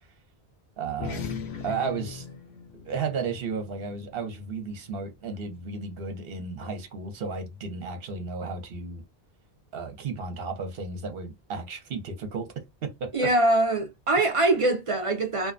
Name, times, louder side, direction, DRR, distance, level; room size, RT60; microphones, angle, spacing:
voice 1, 0.8-1.2 1.6-2.3 2.8-9.0 9.7-13.3 14.2-14.3, right 5 dB, 65° right, 1.0 m, -33 dB
sound 1, 0.9-5.7, left 6 dB, 85° left, 0.9 m, -40 dB
voice 2, 13.1-15.5, right 2 dB, 45° right, 0.4 m, -23 dB
2.5 x 2.2 x 2.5 m
omnidirectional pair, 1.1 m